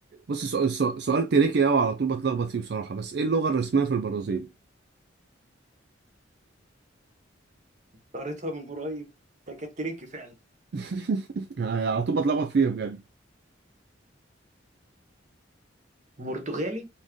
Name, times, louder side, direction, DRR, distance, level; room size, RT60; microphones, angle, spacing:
voice 1, 0.3-4.5 10.7-13.0, right 5 dB, 55° right, 0.4 m, -25 dB
voice 2, 8.1-9.1 9.5-10.3 10.8-10.9 16.2-16.9, right 1 dB, 40° right, 1.3 m, -34 dB
4.3 x 3.6 x 3.0 m
head